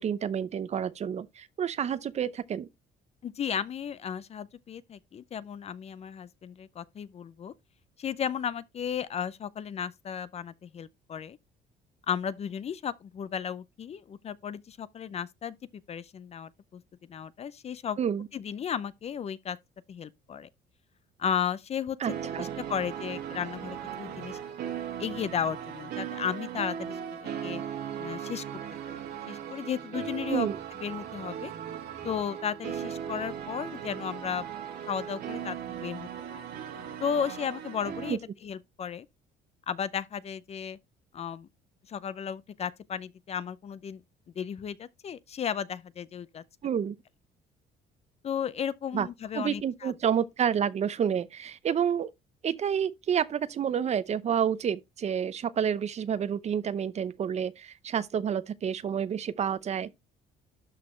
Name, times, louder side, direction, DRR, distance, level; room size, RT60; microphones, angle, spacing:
voice 1, 0.0-2.7 18.0-18.3 22.0-22.5 30.3-30.6 38.1-38.2 46.6-46.9 48.9-49.1 49.3-52.1 52.4-59.9, right 8 dB, 40° right, 0.7 m, -29 dB
voice 2, 3.2-7.5 8.0-11.4 12.1-15.6 15.9-16.8 17.1-18.0 18.3-19.6 19.9-20.5 21.2-22.0 22.4-24.4 25.0-27.6 28.0-28.4 28.9-29.0 29.3-30.5 30.8-31.5 32.0-34.4 34.9-36.4 37.0-39.1 39.7-40.8 41.1-41.5 41.9-44.0 44.4-46.4 48.2-49.9, left 8 dB, 40° left, 0.5 m, -34 dB
sound 1, 22.0-38.1, right 8 dB, 75° right, 2.0 m, -38 dB
12.5 x 4.2 x 3.2 m
cardioid pair, 110°, 17 cm